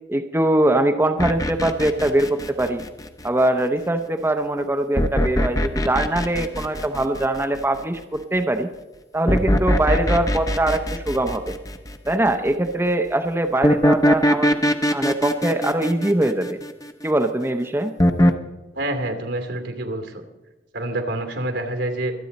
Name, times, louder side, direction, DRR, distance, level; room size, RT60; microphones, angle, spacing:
voice 1, 0.1-2.8 3.2-8.7 9.1-11.6 12.1-14.5 14.9-16.6 17.0-17.9, right 1 dB, 15° right, 6 dB, 0.7 m, -22 dB
sound 1, 1.2-3.4 5.0-7.6 9.3-12.1 13.6-17.0 18.0-18.3, equal, 20° left, 0.8 m, -21 dB
voice 2, 18.8-20.2 20.7-22.1, right 1 dB, 80° right, 6 dB, 2.6 m, -27 dB
25.5 x 9.1 x 4.1 m, 1.1 s
head